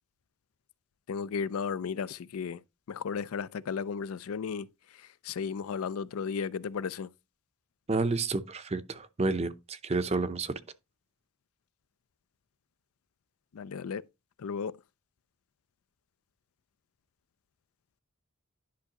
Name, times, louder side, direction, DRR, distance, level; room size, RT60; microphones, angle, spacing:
voice 1, 1.1-2.6 2.9-4.7 4.9-7.1 13.5-14.0 14.4-14.8, left 6 dB, 85° left, 0.4 m, -34 dB
voice 2, 7.9-10.6, right 3 dB, 30° right, 0.6 m, -30 dB
10.5 x 5.5 x 2.9 m
head